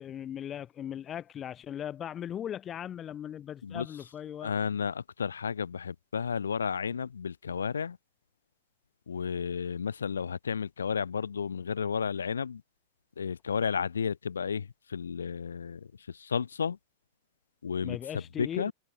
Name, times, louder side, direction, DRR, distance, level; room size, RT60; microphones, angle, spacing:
voice 1, 0.0-4.5 17.8-18.7, left 10 dB, 30° left, 0.4 m, -38 dB
voice 2, 4.4-8.0 9.1-12.6 13.2-16.8 17.6-18.7, left 6 dB, 75° left, 0.7 m, -32 dB
figure-of-eight pair, 90°, 0 cm